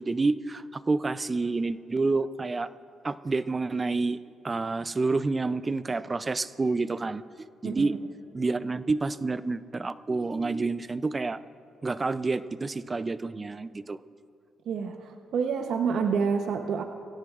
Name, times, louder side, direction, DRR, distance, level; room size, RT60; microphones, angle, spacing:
voice 1, 0.0-2.7 3.0-4.2 4.4-7.2 7.6-8.0 8.3-11.4 11.8-14.0, right 3 dB, 25° right, 15 dB, 0.4 m, -28 dB
voice 2, 14.7-16.8, right 6 dB, 70° right, 5 dB, 0.8 m, -28 dB
23.0 x 16.5 x 2.5 m, 2.3 s
cardioid pair, 90°, 0 cm